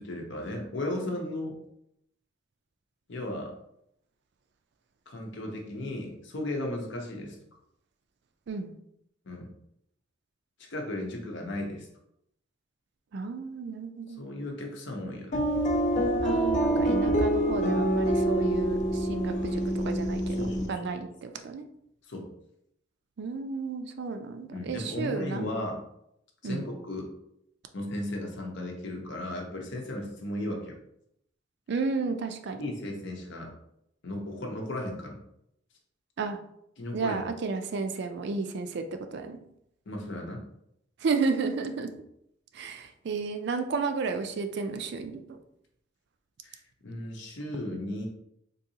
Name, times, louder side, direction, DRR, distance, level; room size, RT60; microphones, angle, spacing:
voice 1, 0.0-1.6 3.1-3.5 5.1-7.4 9.3-9.5 10.6-11.9 14.2-15.4 20.4-20.9 22.0-22.3 24.5-25.8 26.4-27.1 27.7-30.8 32.6-33.5 34.0-35.2 36.8-37.3 39.9-40.4 46.4-48.1, left 1 dB, 65° left, 1 dB, 0.8 m, -35 dB
voice 2, 13.1-14.2 16.2-21.7 23.2-25.5 26.4-26.6 31.7-32.6 36.2-36.4 36.9-39.4 41.0-41.9 42.5-45.4, right 4 dB, 60° right, 7 dB, 0.4 m, -32 dB
sound 1, 15.3-20.7, right 1 dB, 40° left, 0.4 m, -26 dB
3.8 x 2.7 x 2.8 m, 0.76 s
head